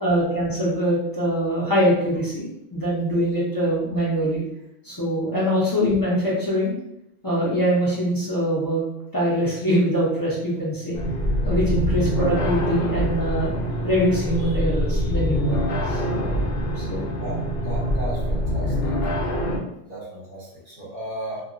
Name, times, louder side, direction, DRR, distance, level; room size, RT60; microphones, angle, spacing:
voice 1, 0.0-4.4 4.8-6.7 7.2-8.8 9.1-11.0 11.4-13.6 13.8-16.0 16.7-17.0, equal, 25° left, -7 dB, 0.5 m, -23 dB
sound 1, 10.9-19.6, equal, 60° left, 0.7 m, -24 dB
voice 2, 17.1-18.9 19.9-21.4, right 1 dB, 45° right, -6 dB, 1.0 m, -35 dB
2.8 x 2.3 x 2.5 m, 0.83 s
omnidirectional pair, 1.3 m